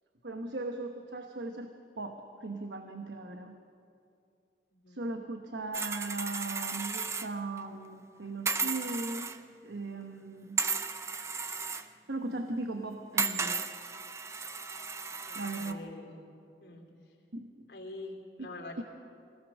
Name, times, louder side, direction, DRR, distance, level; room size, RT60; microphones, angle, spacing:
voice 1, 0.2-3.6 4.9-9.3 9.6-10.6 12.1-13.7 15.3-15.8 17.3-17.5 18.4-18.5 18.8-18.9, right 2 dB, 85° right, 5 dB, 1.1 m, -38 dB
voice 2, 4.7-5.0 15.3-16.3 16.6-17.1 17.7-18.8, left 2 dB, 65° left, 0 dB, 3.2 m, -46 dB
sound 1, 5.7-7.3 7.6-7.7 8.5-9.4 10.6-11.9 13.2-15.7, right 4 dB, 15° right, 0.5 m, -34 dB
24.0 x 17.0 x 6.4 m, 2.6 s
head